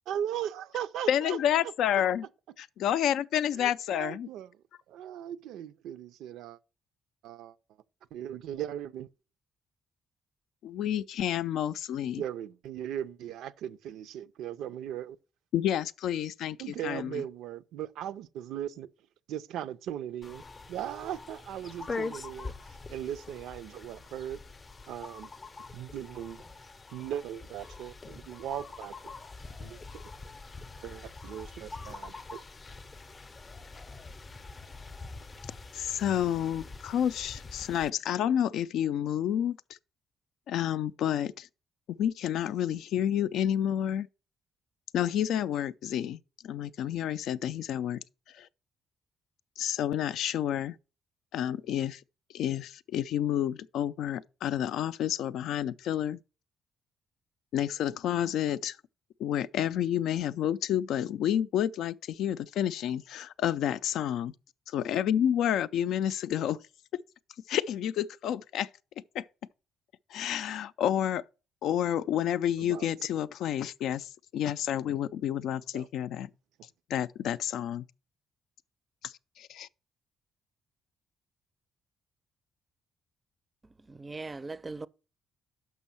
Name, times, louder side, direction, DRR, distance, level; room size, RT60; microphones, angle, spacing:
voice 1, 0.1-1.4 3.5-4.5 4.9-6.6 7.2-7.6 8.1-9.1 12.2-15.2 16.6-18.9 19.3-22.5 22.9-24.4 24.9-25.3 25.7-26.4 26.9-29.1 29.6-30.0 30.8-32.4 72.6-72.9 75.7-75.9, right 10 dB, 85° right, 0.4 m, -38 dB
voice 2, 1.1-2.3 2.6-4.3 10.6-12.2 15.5-17.2 35.7-39.6 40.5-41.5 41.9-44.1 44.9-46.2 46.4-48.0 48.3-48.5 49.6-50.8 51.3-52.0 52.3-56.2 57.5-58.8 59.2-64.3 64.7-66.6 67.5-68.7 69.1-69.2 70.1-71.2 71.6-76.3 76.9-77.9 79.0-79.7, left 10 dB, 80° left, 0.3 m, -29 dB
sound 1, 20.2-37.9, left 3 dB, 30° left, 0.6 m, -44 dB
voice 3, 83.9-84.9, right 3 dB, 25° right, 0.4 m, -39 dB
6.2 x 5.4 x 5.6 m
cardioid pair, 90°, 0 cm